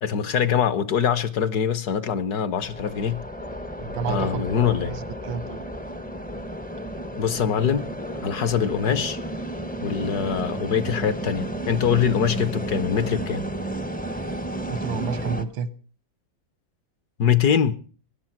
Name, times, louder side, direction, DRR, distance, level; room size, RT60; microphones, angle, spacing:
voice 1, 0.0-3.2 4.1-5.0 7.2-7.9 8.2-9.2 9.8-13.4 17.2-17.8, left 8 dB, 60° left, 1.3 m, -23 dB
sound 1, 2.6-15.4, right 1 dB, 15° left, 0.3 m, -32 dB
voice 2, 3.8-5.6 14.7-15.7, right 5 dB, 90° right, 1.9 m, -30 dB
17.5 x 11.5 x 5.8 m
omnidirectional pair, 2.1 m